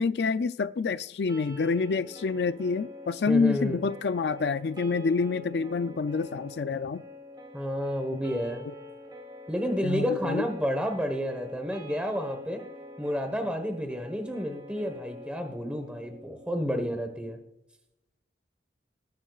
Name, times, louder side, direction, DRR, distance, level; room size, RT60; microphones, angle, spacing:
voice 1, 0.0-7.0 8.1-8.2 8.6-8.7 9.8-10.5, left 4 dB, 75° left, 12 dB, 0.4 m, -27 dB
sound 1, 1.3-17.3, left 2 dB, 25° right, 2.6 m, -46 dB
voice 2, 3.3-3.8 7.5-8.6 9.5-12.6 13.0-17.4, equal, 5° right, 5 dB, 1.2 m, -30 dB
19.5 x 10.5 x 2.4 m, 0.81 s
head